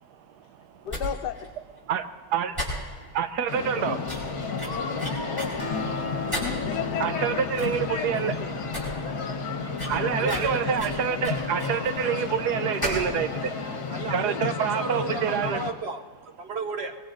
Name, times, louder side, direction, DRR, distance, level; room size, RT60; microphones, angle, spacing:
voice 1, 0.8-1.5 6.4-8.5, left 8 dB, 85° left, 1.4 m, -34 dB
sound 1, 0.9-1.0 1.3-1.5 1.8-1.9 2.5-3.1 3.5-3.6 4.1-5.5 6.3-6.7 7.1-7.2 7.5-7.8 8.1-8.2 8.6-8.9 9.1-9.2 9.8-11.9 12.8-13.1 13.4-13.5, equal, 15° right, 5.1 m, -34 dB
voice 2, 3.1-4.0 7.0-8.3 9.9-13.5 14.1-15.6, right 8 dB, 80° right, 1.2 m, -27 dB
sound 2, 3.5-15.7, left 4 dB, 65° left, 1.7 m, -32 dB
Acoustic guitar, 5.6-9.3, left 4 dB, 25° left, 3.6 m, -38 dB
voice 3, 10.2-10.8 12.0-12.1 13.9-17.0, right 3 dB, 55° right, 0.7 m, -33 dB
24.5 x 21.0 x 2.6 m
omnidirectional pair, 1.8 m